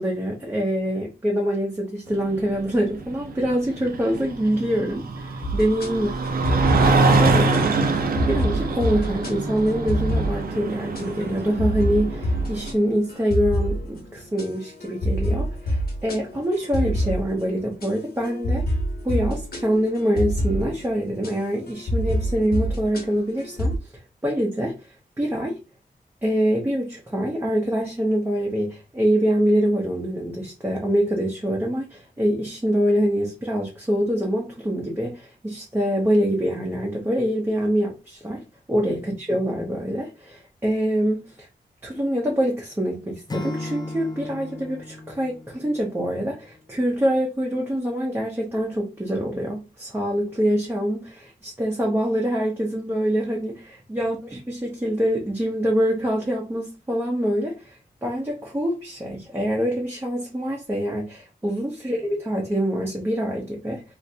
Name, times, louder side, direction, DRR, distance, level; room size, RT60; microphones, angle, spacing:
voice 1, 0.0-6.1 6.8-7.6 8.3-18.6 19.0-23.8 24.2-24.7 25.2-25.6 26.2-38.4 38.7-41.5 41.8-63.8, equal, 15° right, 0.6 m, -25 dB
sound 1, 2.1-12.7, right 3 dB, 70° right, 0.5 m, -24 dB
sound 2, 5.4-23.8, equal, 75° left, 1.1 m, -28 dB
Acoustic guitar / Strum, 43.3-46.4, left 2 dB, 25° left, 0.3 m, -35 dB
3.3 x 2.5 x 2.7 m
wide cardioid pair, 150°, 16 cm